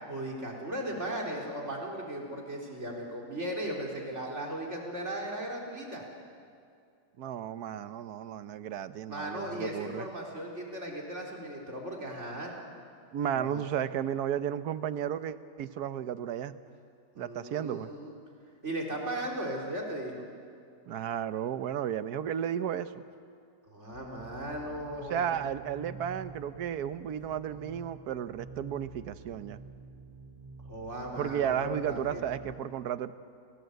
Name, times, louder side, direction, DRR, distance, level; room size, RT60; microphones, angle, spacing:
voice 1, 0.1-6.0 9.1-12.5 13.3-13.6 17.1-18.1 18.6-20.2 23.7-25.4 30.6-32.2, right 1 dB, 40° right, -1 dB, 4.2 m, -37 dB
voice 2, 7.2-10.1 13.1-16.5 17.2-17.9 20.9-23.0 25.1-29.6 31.2-33.1, right 9 dB, 65° right, 13 dB, 1.3 m, -33 dB
sound 1, 23.9-32.6, right 3 dB, 20° right, 3.4 m, -49 dB
29.5 x 19.0 x 8.1 m, 2.4 s
omnidirectional pair, 1.9 m